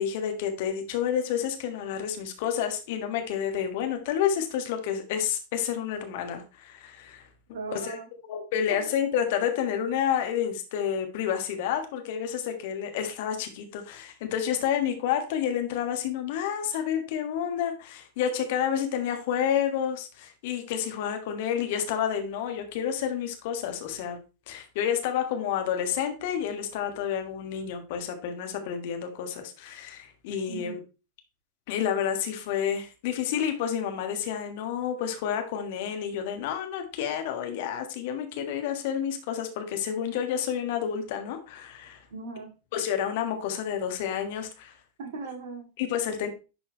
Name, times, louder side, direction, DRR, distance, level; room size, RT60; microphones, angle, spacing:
voice 1, 0.0-7.2 7.7-8.0 8.3-24.2 24.5-30.8 31.7-42.0 42.7-44.7 45.8-46.3, left 9 dB, 50° left, 6 dB, 1.4 m, -29 dB
voice 2, 7.5-8.1 8.7-9.0 30.5-30.7 42.1-42.5 45.0-45.7, right 4 dB, 55° right, 3 dB, 2.0 m, -38 dB
10.5 x 4.3 x 3.2 m, 0.31 s
figure-of-eight pair, 90°, 0 cm